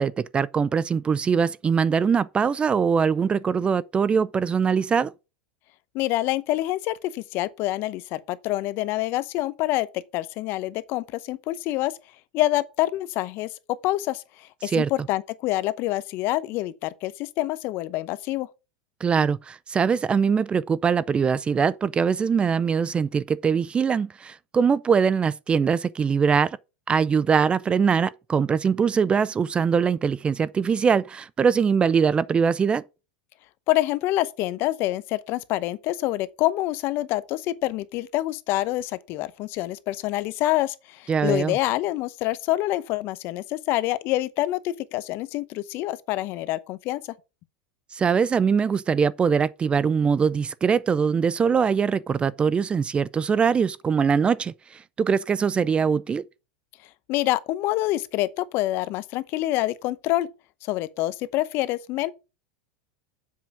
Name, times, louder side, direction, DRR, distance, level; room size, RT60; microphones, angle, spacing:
voice 1, 0.0-5.1 14.6-14.9 19.0-26.6 26.9-32.8 41.1-41.6 47.9-56.2, right 6 dB, 20° right, 0.4 m, -22 dB
voice 2, 5.9-9.9 10.1-12.0 12.3-13.5 13.8-18.5 33.7-47.0 57.1-60.3 60.6-62.1, left 16 dB, 50° left, 0.8 m, -26 dB
7.5 x 5.6 x 6.0 m
hypercardioid pair, 110°, 5 cm